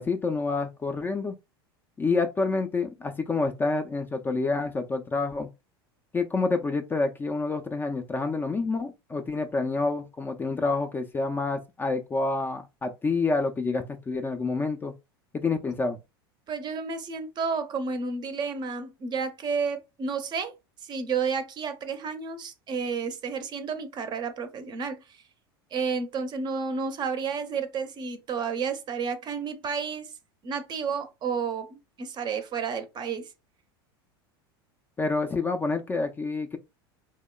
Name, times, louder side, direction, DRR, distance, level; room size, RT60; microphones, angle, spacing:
voice 1, 0.0-1.3 2.0-5.5 6.1-14.9 15.3-16.0 35.0-36.6, left 3 dB, 15° left, 0.3 m, -28 dB
voice 2, 16.5-20.5 20.8-25.2 25.7-30.1 30.4-33.3, right 5 dB, 35° right, 0.5 m, -31 dB
2.8 x 2.1 x 2.2 m
hypercardioid pair, 90°, 13 cm